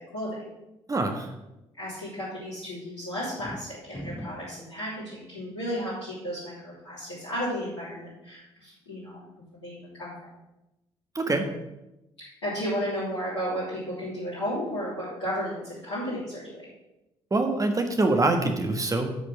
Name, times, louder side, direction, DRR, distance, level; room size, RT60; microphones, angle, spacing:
voice 1, 0.9-1.3 11.1-11.5 17.3-19.1, right 2 dB, 25° right, 5 dB, 1.5 m, -24 dB
voice 2, 1.8-9.3 9.6-10.3 12.2-16.7, equal, 80° left, -14 dB, 3.5 m, -33 dB
sound 1, 3.2-4.6, equal, 10° left, 1.8 m, -39 dB
8.4 x 5.0 x 7.1 m, 0.95 s
figure-of-eight pair, 45°, 14 cm